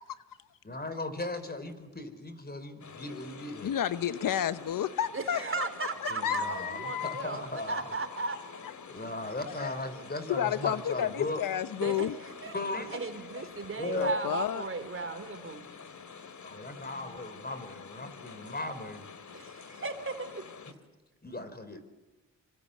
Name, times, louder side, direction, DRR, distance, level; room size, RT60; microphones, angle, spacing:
voice 1, 0.6-3.7 6.1-7.9 8.9-11.4 12.5-13.0 13.4-14.2 16.4-19.1 21.2-21.8, left 2 dB, 30° left, 11 dB, 4.4 m, -37 dB
sound 1, 2.8-20.7, left 5 dB, 60° left, 2.5 m, -48 dB
voice 2, 3.6-5.7 6.0-7.2 9.5-9.7 10.3-12.1 13.9-14.7, left 10 dB, 75° left, 13 dB, 1.0 m, -31 dB
voice 3, 5.1-8.4 11.8-12.5 12.9-15.7 19.3-20.4, right 3 dB, 40° right, 8 dB, 4.2 m, -36 dB
25.5 x 25.0 x 8.4 m, 1.1 s
cardioid pair, 60°, 33 cm